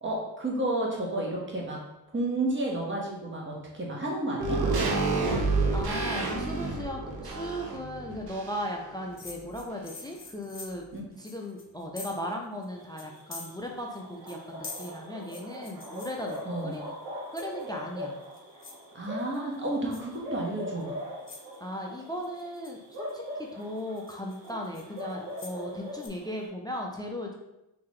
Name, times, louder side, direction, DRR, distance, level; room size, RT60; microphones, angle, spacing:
voice 1, 0.0-1.8 2.1-4.6 10.9-11.0 16.4-16.7 18.9-20.9, right 1 dB, 25° right, -2 dB, 1.3 m, -31 dB
sound 1, 4.4-8.9 9.2-9.3, right 3 dB, 50° right, 0.9 m, -29 dB
voice 2, 5.7-10.8 11.2-16.9 17.3-18.1 21.6-27.3, left 1 dB, 10° left, 1 dB, 0.4 m, -37 dB
sound 2, 9.2-12.3 12.6-12.7 13.0-14.0 14.3-16.8 17.4-17.8 18.2-18.8 19.2-19.6 19.9-20.2 20.8-20.9 21.3-21.6 22.2-23.1 23.6-25.6 26.0-26.1, left 3 dB, 25° left, 0.8 m, -45 dB
sound 3, 12.7-26.5, equal, 75° right, 1.3 m, -41 dB
3.6 x 2.9 x 3.1 m, 0.92 s
supercardioid pair, 60°, 47 cm